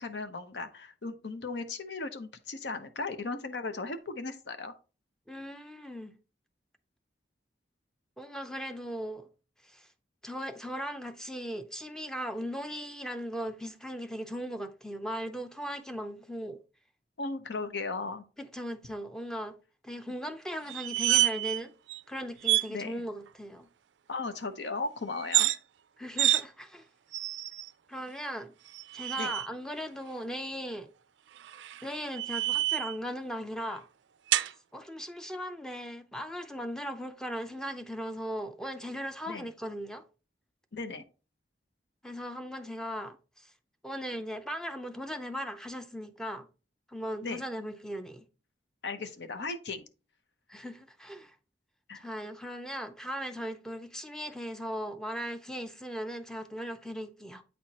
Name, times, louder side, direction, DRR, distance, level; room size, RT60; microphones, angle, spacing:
voice 1, 0.0-4.7 17.2-18.2 22.7-23.0 24.1-25.5 29.2-29.3 39.3-39.5 40.7-41.0 47.2-47.4 48.8-49.8 51.9-52.0, left 3 dB, 75° left, 0.8 m, -36 dB
voice 2, 5.3-6.1 8.2-9.3 9.6-9.9 10.2-16.6 18.4-19.5 19.8-21.7 22.1-23.7 26.0-26.8 27.9-28.5 28.9-30.9 31.8-33.8 34.7-40.0 42.0-43.5 43.8-46.5 46.9-48.2 50.5-51.4 51.9-57.4, equal, 5° left, 0.5 m, -38 dB
sound 1, 20.7-21.6 21.9-22.0 22.4-22.7 25.2-25.6 26.2-26.4 27.1-27.7 28.7-29.5 31.4-33.0 34.3-34.5, right 14 dB, 90° right, 0.4 m, -28 dB
8.3 x 4.3 x 2.9 m
head